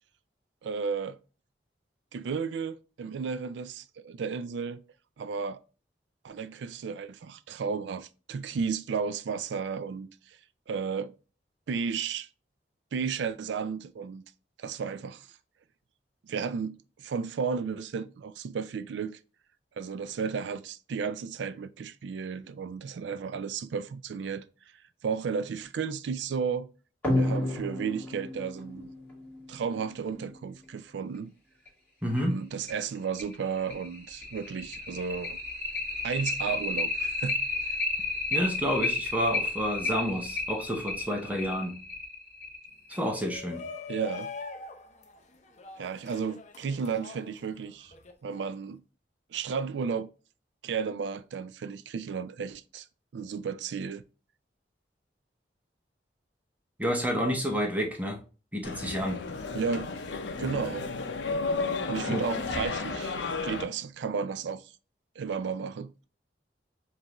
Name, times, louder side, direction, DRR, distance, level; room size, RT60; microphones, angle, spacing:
voice 1, 0.6-1.2 2.1-4.8 5.2-5.6 6.2-10.4 10.7-11.1 11.7-12.3 12.9-14.2 14.6-15.3 16.2-19.2 19.8-24.4 25.0-26.7 27.1-28.9 29.5-31.3 32.2-35.4 36.0-37.4 37.7-37.8 43.9-44.3 45.8-47.9 48.2-48.8 49.3-50.1 50.6-52.9 53.1-54.0 59.5-59.9 60.4-60.9 61.9-63.2 63.4-64.7 65.2-65.9, right 6 dB, 80° right, 0.4 m, -33 dB
sound 1, 27.0-30.2 31.7-31.8 32.2-32.3 32.7-32.8 33.2-43.2, left 2 dB, 10° left, 1.9 m, -31 dB
voice 2, 32.0-32.4 38.3-41.8 42.9-43.6 56.8-58.2 58.5-59.2 62.1-62.2, equal, 10° right, 0.7 m, -29 dB
Shout, 43.0-48.1, left 4 dB, 40° left, 0.6 m, -43 dB
sound 2, 58.6-63.6, left 4 dB, 90° left, 0.6 m, -33 dB
5.1 x 2.5 x 2.9 m
head